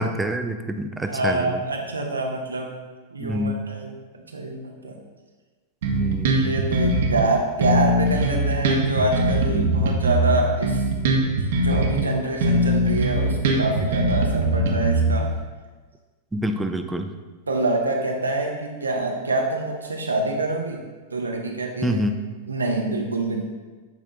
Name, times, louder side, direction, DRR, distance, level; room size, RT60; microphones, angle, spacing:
voice 1, 0.0-1.6 3.2-3.7 5.9-6.5 9.5-9.9 16.3-17.1 21.8-22.2, right 1 dB, 10° right, 6 dB, 0.5 m, -27 dB
voice 2, 1.0-2.8 3.1-5.0 6.3-10.8 11.5-15.3 17.5-20.8 21.1-22.0 22.5-23.4, right 2 dB, 90° right, 2 dB, 0.9 m, -26 dB
Bass guitar, 5.8-7.3 7.6-12.1 12.4-15.4, right 1 dB, 65° right, 1.0 m, -21 dB
7.4 x 3.6 x 3.9 m, 1.3 s
hypercardioid pair, 100°, 0 cm